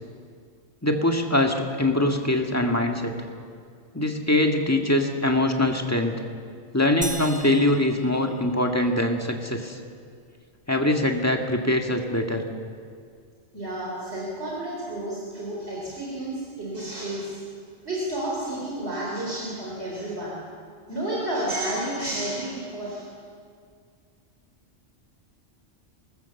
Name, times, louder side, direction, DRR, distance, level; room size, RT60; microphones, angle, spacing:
voice 1, 0.8-3.1 3.9-6.2 6.7-9.8 10.7-12.4, left 1 dB, 15° left, 2 dB, 1.9 m, -23 dB
sound 1, 7.0-8.9, right 1 dB, 5° right, 1.3 m, -37 dB
voice 2, 13.5-17.4 17.8-20.3 20.9-23.1, right 1 dB, 60° right, -5 dB, 4.4 m, -31 dB
24.5 x 20.0 x 7.2 m, 2.2 s
omnidirectional pair, 1.2 m